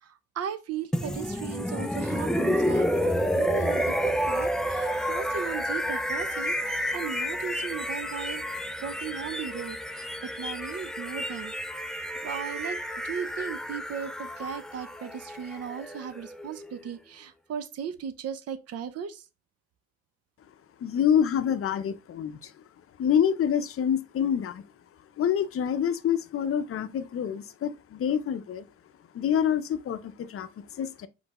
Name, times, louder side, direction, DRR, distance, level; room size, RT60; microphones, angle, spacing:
voice 1, 0.0-11.5 12.2-19.2, right 8 dB, 55° right, 0.7 m, -37 dB
sound 1, 0.9-16.8, equal, ahead, 0.3 m, -30 dB
voice 2, 20.8-22.5 23.0-24.6 25.2-28.7 29.1-31.1, left 8 dB, 45° left, 0.6 m, -27 dB
5.1 x 3.3 x 2.9 m
cardioid pair, 90°, 30 cm